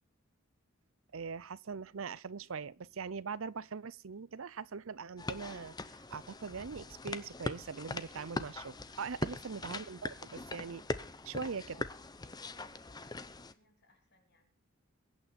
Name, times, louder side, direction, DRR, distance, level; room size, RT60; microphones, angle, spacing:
sound 1, 0.9-13.5, right 1 dB, 15° right, 5.5 m, -76 dB
voice 1, 1.1-10.8 11.2-11.9, right 5 dB, 65° right, 0.6 m, -42 dB
sound 2, 5.2-13.5, left 2 dB, 20° left, 0.6 m, -41 dB
voice 2, 12.4-14.5, left 2 dB, 50° left, 3.2 m, -68 dB
23.0 x 8.9 x 4.3 m
head